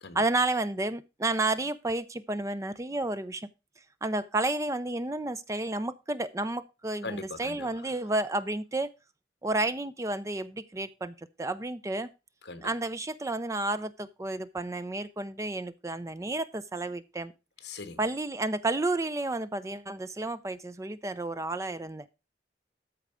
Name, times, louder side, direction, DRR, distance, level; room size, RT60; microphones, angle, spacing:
voice 1, 0.1-3.5 4.0-8.9 9.4-12.1 12.6-17.3 18.0-22.1, right 2 dB, 15° right, 0.4 m, -31 dB
voice 2, 7.0-7.7 12.4-12.7 17.6-18.0, left 3 dB, 65° left, 1.4 m, -40 dB
13.5 x 4.5 x 4.9 m
head